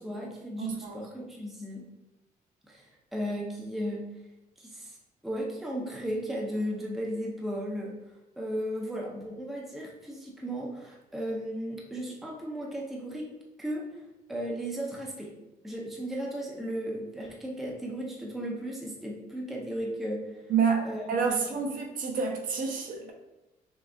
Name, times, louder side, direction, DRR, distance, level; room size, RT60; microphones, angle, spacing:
voice 1, 0.0-1.8 2.7-4.1 4.6-5.0 5.2-7.9 8.4-13.3 13.6-14.0 14.3-15.3 15.6-20.4 20.8-21.6, equal, ahead, -2 dB, 0.5 m, -35 dB
voice 2, 0.6-1.0 20.5-23.1, right 5 dB, 55° right, 1 dB, 0.8 m, -28 dB
6.1 x 2.3 x 3.3 m, 1.0 s
cardioid pair, 180°, 16 cm